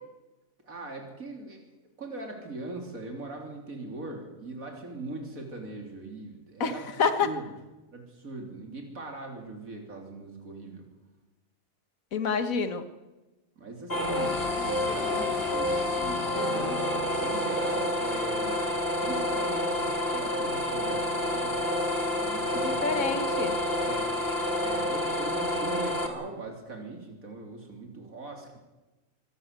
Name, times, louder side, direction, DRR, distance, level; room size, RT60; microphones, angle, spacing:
voice 1, 0.6-1.6 2.0-7.0 7.2-7.4 7.9-10.9 13.6-18.6 19.0-21.6 22.1-23.1 23.8-24.1 24.6-28.6, right 2 dB, 90° right, 2 dB, 3.9 m, -40 dB
voice 2, 6.6-7.3 12.1-12.8 22.6-23.6, left 5 dB, 80° left, 9 dB, 1.8 m, -28 dB
sound 1, 13.9-26.1, left 1 dB, 45° left, 3.2 m, -28 dB
25.5 x 16.5 x 8.3 m, 1.1 s
omnidirectional pair, 1.4 m